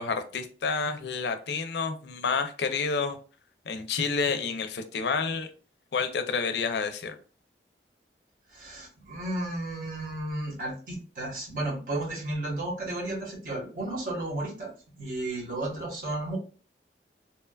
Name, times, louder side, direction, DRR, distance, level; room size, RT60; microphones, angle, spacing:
voice 1, 0.0-3.2 3.7-5.5 5.9-7.1, left 5 dB, 70° left, 7 dB, 0.4 m, -29 dB
voice 2, 8.5-14.7 15.0-16.4, right 1 dB, 50° right, -3 dB, 1.0 m, -33 dB
2.9 x 2.2 x 2.2 m, 0.37 s
head